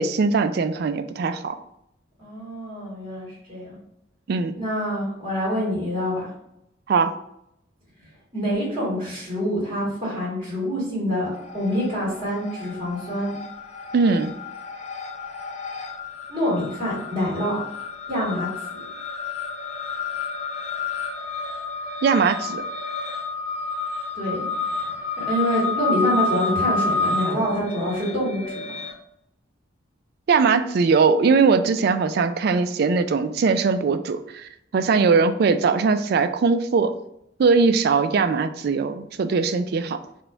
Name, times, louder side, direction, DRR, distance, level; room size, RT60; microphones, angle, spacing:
voice 1, 0.0-1.5 4.3-4.5 6.9-7.1 13.9-14.3 22.0-22.6 30.3-36.9 37.4-40.0, right 4 dB, 55° right, 10 dB, 0.3 m, -20 dB
voice 2, 2.2-3.8 4.5-6.3 8.3-13.4 16.3-17.6 18.1-18.5 24.1-28.6, equal, 35° right, -8 dB, 1.6 m, -26 dB
sound 1, 11.4-12.0 12.3-28.9, left 4 dB, 40° left, 0.6 m, -29 dB
4.2 x 2.2 x 4.4 m, 0.79 s
head